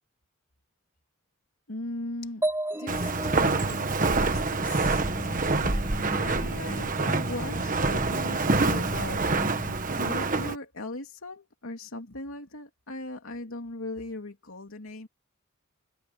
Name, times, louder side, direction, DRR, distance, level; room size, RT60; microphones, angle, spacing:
voice 1, 1.7-2.4 2.8-9.7 9.9-15.1, left 2 dB, 85° left, 2.8 m, -39 dB
sound 1, 2.4-6.1, right 1 dB, 10° right, 3.7 m, -35 dB
Walk footsteps, 2.9-10.6, right 3 dB, 40° right, 1.4 m, -26 dB
sound 2, 4.1-9.8, equal, 25° left, 5.0 m, -40 dB
head